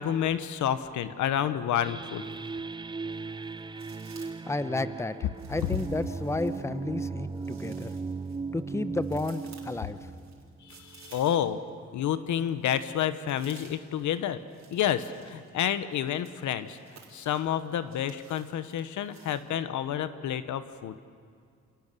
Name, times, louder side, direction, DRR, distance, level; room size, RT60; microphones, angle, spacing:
voice 1, 0.0-2.2 10.6-11.6 11.9-14.4 14.7-16.8 17.1-21.0, left 10 dB, 75° left, 12 dB, 1.1 m, -29 dB
sound 1, 1.8-11.2, right 4 dB, 15° right, 0.5 m, -37 dB
sound 2, 1.9-2.7 3.0-4.5 5.3-11.7 12.0-19.5, right 6 dB, 65° right, 4.2 m, -56 dB
voice 2, 4.5-5.2 5.5-7.9 8.5-10.1, left 2 dB, 10° left, 12 dB, 0.9 m, -32 dB
27.5 x 18.5 x 6.9 m, 2.2 s
cardioid pair, 90°, 30 cm